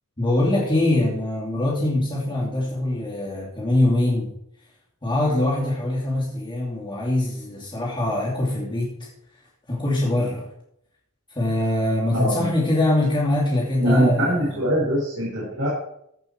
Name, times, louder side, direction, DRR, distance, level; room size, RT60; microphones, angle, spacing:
voice 1, 0.2-4.3 5.0-9.1 9.7-10.5 11.3-14.6, left 1 dB, 20° left, -10 dB, 2.9 m, -23 dB
voice 2, 12.1-12.5 13.8-15.7, equal, 60° right, -8 dB, 4.3 m, -23 dB
15.5 x 6.1 x 4.6 m, 0.75 s
head